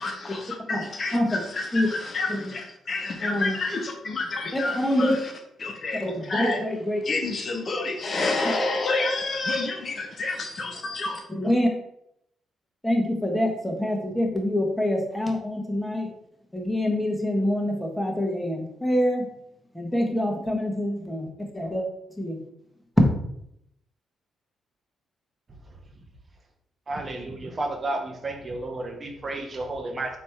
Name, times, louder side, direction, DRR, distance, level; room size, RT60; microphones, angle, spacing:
voice 1, 0.0-5.1 5.6-6.6 7.0-11.2, left 3 dB, 45° left, 2 dB, 0.9 m, -29 dB
voice 2, 3.2-3.6 4.5-5.1 6.0-7.0 8.4-8.5 11.3-11.7 12.8-16.1 16.5-19.2 19.7-21.9 22.2-22.4, left 1 dB, 5° left, 0 dB, 1.3 m, -26 dB
voice 3, 26.9-30.2, right 2 dB, 40° right, 3 dB, 1.0 m, -32 dB
4.1 x 3.1 x 3.5 m, 0.75 s
hypercardioid pair, 45°, 0 cm